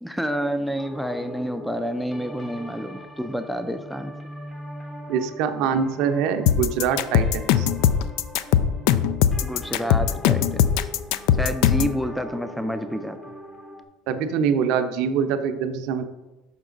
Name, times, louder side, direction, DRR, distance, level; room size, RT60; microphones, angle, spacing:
voice 1, 0.0-4.1 9.4-10.9 11.4-13.2, equal, ahead, 7 dB, 0.4 m, -29 dB
sound 1, 0.8-13.8, equal, 20° left, 0.8 m, -40 dB
voice 2, 5.1-7.7 14.1-16.0, right 7 dB, 70° right, 8 dB, 0.6 m, -24 dB
sound 2, 6.5-12.0, left 10 dB, 75° left, 0.3 m, -20 dB
6.0 x 5.4 x 3.9 m, 1.1 s
supercardioid pair, 120°, 0 cm